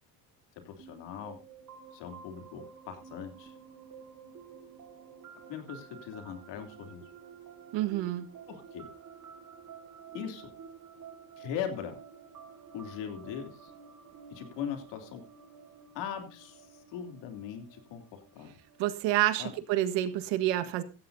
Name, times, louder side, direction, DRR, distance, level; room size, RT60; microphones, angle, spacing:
voice 1, 0.6-1.4 1.9-3.5 5.5-7.0 8.5-8.9 10.1-10.5 11.4-12.0 12.7-13.7 14.3-15.2 15.9-16.7 16.9-18.6 19.4-19.5, left 8 dB, 75° left, 5 dB, 3.1 m, -40 dB
sound 1, 0.8-20.3, right 6 dB, 45° right, 5.1 m, -51 dB
voice 2, 7.7-8.3 18.8-20.8, right 14 dB, 80° right, 10 dB, 1.7 m, -28 dB
16.0 x 15.0 x 2.7 m, 0.31 s
cardioid pair, 140°, 43 cm